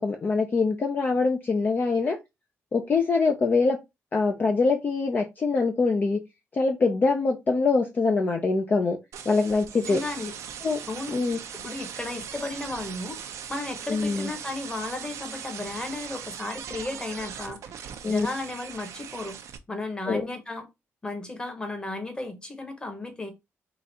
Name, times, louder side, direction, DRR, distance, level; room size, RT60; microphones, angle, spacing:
voice 1, 0.0-2.2 2.7-3.8 4.1-6.2 6.5-9.0 9.3-10.0 10.6-10.8 11.1-11.4 13.9-14.3 18.0-18.3 20.1-20.2, left 4 dB, 35° left, 0.6 m, -24 dB
sound 1, 9.1-19.6, right 8 dB, 80° right, 0.6 m, -40 dB
voice 2, 9.7-10.4 10.9-17.8 18.1-19.4 19.7-20.7 21.0-23.3, left 2 dB, 15° left, 1.2 m, -34 dB
4.0 x 2.5 x 4.2 m
cardioid pair, 115°, 5 cm